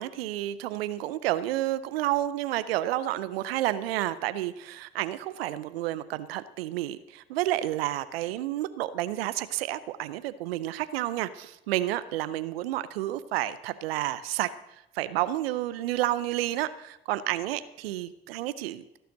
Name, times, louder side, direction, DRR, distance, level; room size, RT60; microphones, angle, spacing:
voice 1, 0.0-14.5 14.9-19.0, right 14 dB, 85° right, 15 dB, 0.6 m, -30 dB
16.5 x 6.9 x 7.6 m, 0.85 s
hypercardioid pair, 40°, 29 cm